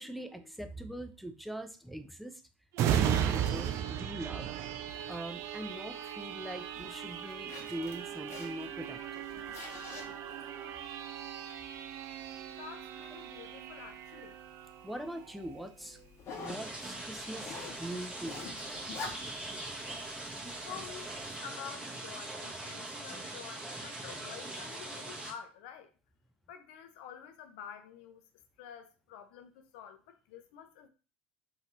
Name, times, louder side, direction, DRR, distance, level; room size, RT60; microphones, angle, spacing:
voice 1, 0.0-2.4 2.9-4.5 5.1-9.2 14.8-16.0 16.4-18.5, right 1 dB, ahead, 0.5 m, -42 dB
sound 1, 2.7-16.1 16.5-16.7, right 10 dB, 50° right, 0.4 m, -37 dB
Zipper (clothing), 4.9-21.4, left 4 dB, 45° left, 0.9 m, -50 dB
voice 2, 12.5-14.4 20.6-25.9 26.5-28.2 28.6-30.9, left 8 dB, 65° left, 0.6 m, -49 dB
sound 2, 16.5-25.3, right 2 dB, 15° right, 1.4 m, -42 dB
3.8 x 2.7 x 3.1 m
figure-of-eight pair, 70°, 6 cm